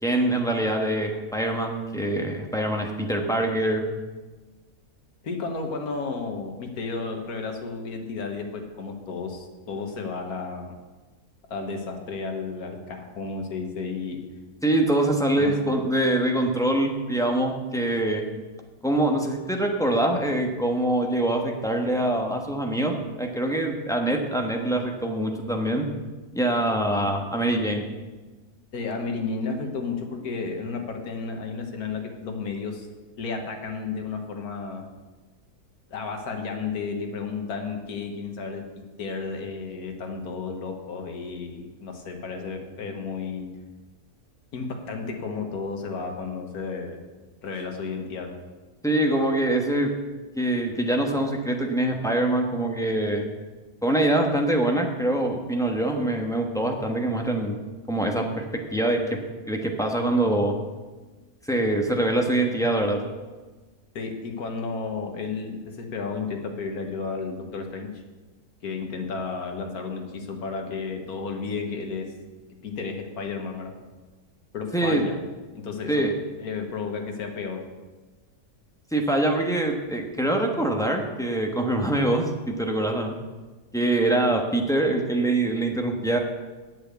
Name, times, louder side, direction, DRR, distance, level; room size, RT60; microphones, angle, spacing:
voice 1, 0.0-3.8 14.6-18.2 18.8-25.9 26.3-27.8 48.8-49.9 50.4-53.3 53.8-57.6 57.9-59.2 59.5-60.5 61.5-63.0 74.7-75.0 75.9-76.1 78.9-83.1 83.7-86.2, right 1 dB, 5° left, 2 dB, 1.0 m, -24 dB
voice 2, 5.2-10.7 11.5-14.2 15.4-15.5 28.7-32.9 33.2-34.8 35.9-43.5 44.5-47.0 47.4-48.4 64.0-67.9 68.6-72.1 72.6-73.7 74.5-75.2 75.5-76.0 76.4-77.6, left 4 dB, 80° left, 3 dB, 1.8 m, -32 dB
8.7 x 6.7 x 8.2 m, 1.3 s
omnidirectional pair, 1.6 m